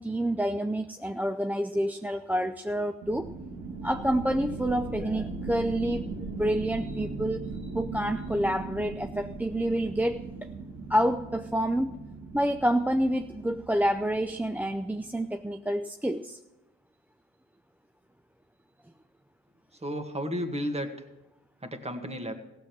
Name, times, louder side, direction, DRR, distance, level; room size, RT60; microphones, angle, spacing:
voice 1, 0.0-3.3 3.8-10.5 10.9-12.0 12.3-16.4, equal, 5° right, 6 dB, 0.5 m, -28 dB
sound 1, 3.0-15.3, right 3 dB, 70° right, 2.1 m, -39 dB
voice 2, 19.8-20.9 21.6-22.3, equal, 20° right, 6 dB, 1.8 m, -32 dB
16.0 x 7.4 x 6.1 m, 0.98 s
supercardioid pair, 50°, 30 cm